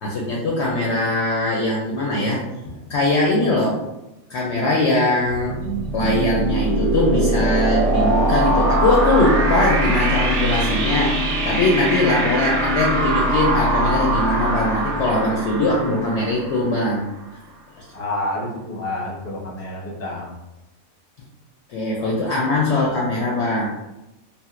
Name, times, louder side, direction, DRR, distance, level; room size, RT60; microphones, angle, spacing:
voice 1, 0.0-3.8 4.3-5.6 5.9-11.2 11.4-17.1 21.7-23.7, left 2 dB, 65° left, -2 dB, 0.7 m, -21 dB
sound 1, 5.4-17.0, right 1 dB, 65° right, 0.8 m, -22 dB
voice 2, 17.9-20.3 22.0-22.1, left 1 dB, 15° left, -5 dB, 0.7 m, -29 dB
3.3 x 2.5 x 2.4 m, 0.96 s
omnidirectional pair, 1.4 m